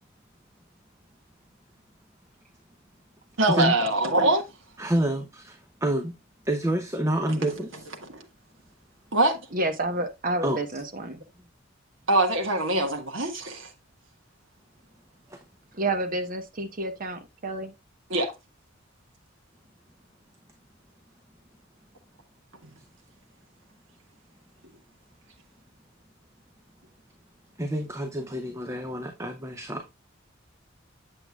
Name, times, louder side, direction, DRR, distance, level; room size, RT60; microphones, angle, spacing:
voice 1, 3.4-4.4 8.1-8.2 9.1-9.4 12.1-13.7 18.1-18.3, right 2 dB, 70° right, 1.5 m, -23 dB
voice 2, 4.8-6.1 6.4-8.0 10.4-10.6 15.3-15.4 27.6-29.9, right 1 dB, 15° right, 0.7 m, -28 dB
voice 3, 9.5-11.2 15.7-17.7, right 2 dB, 45° right, 1.1 m, -29 dB
8.1 x 7.7 x 2.3 m
head